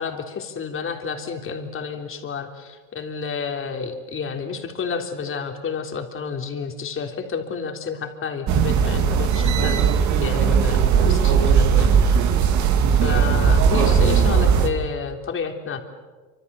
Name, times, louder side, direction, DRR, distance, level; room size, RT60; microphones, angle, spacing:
voice 1, 0.0-12.1 13.0-15.8, left 5 dB, 35° left, 4 dB, 3.6 m, -30 dB
sound 1, 8.5-14.7, right 7 dB, 45° right, 2.8 m, -18 dB
27.0 x 26.0 x 7.0 m, 1.3 s
supercardioid pair, 125°, 38 cm